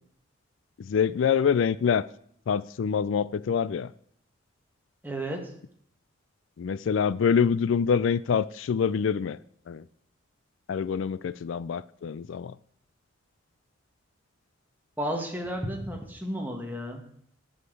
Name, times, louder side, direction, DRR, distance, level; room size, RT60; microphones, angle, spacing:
voice 1, 0.8-2.1 2.5-3.9 6.6-9.4 9.7-9.9 10.7-12.5, left 6 dB, 75° left, 0.4 m, -25 dB
voice 2, 5.0-5.5 15.0-17.0, equal, 10° right, 1.6 m, -32 dB
9.8 x 7.4 x 7.8 m
head